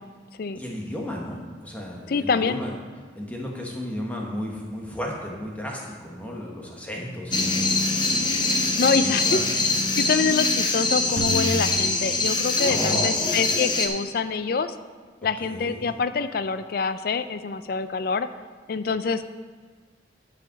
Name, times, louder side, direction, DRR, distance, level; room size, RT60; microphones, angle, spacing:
voice 1, 0.5-2.7 3.2-9.5 12.6-13.2 15.4-16.0, left 1 dB, 10° left, -1 dB, 1.2 m, -34 dB
voice 2, 2.1-2.6 8.8-9.4 10.0-14.7 15.2-18.3 18.7-19.2, left 5 dB, 50° left, 12 dB, 0.4 m, -25 dB
sound 1, 7.3-13.9, left 3 dB, 25° left, 0.7 m, -23 dB
sound 2, 11.2-13.3, right 1 dB, 70° right, 0.8 m, -32 dB
10.5 x 5.0 x 5.8 m, 1.5 s
head